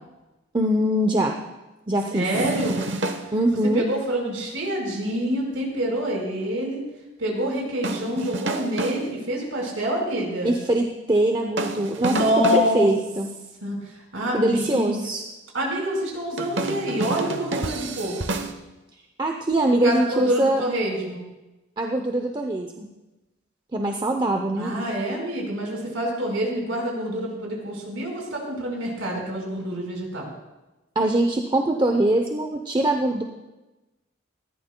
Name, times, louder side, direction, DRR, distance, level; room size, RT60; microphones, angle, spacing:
voice 1, 0.5-1.3 1.9-2.3 3.3-3.8 10.4-12.2 12.5-13.3 14.3-15.2 19.2-20.6 21.8-22.9 23.7-24.8 31.0-33.2, right 1 dB, 20° right, 3 dB, 0.6 m, -22 dB
voice 2, 2.1-2.8 3.7-6.9 7.2-10.6 12.0-12.9 13.6-15.1 15.5-18.2 19.7-21.2 24.6-30.3, equal, 80° right, -1 dB, 4.6 m, -26 dB
sound 1, 2.3-3.3 7.8-9.1 11.6-12.7 16.4-18.5, right 2 dB, 60° right, 0.9 m, -29 dB
19.5 x 14.5 x 2.2 m, 1.1 s
head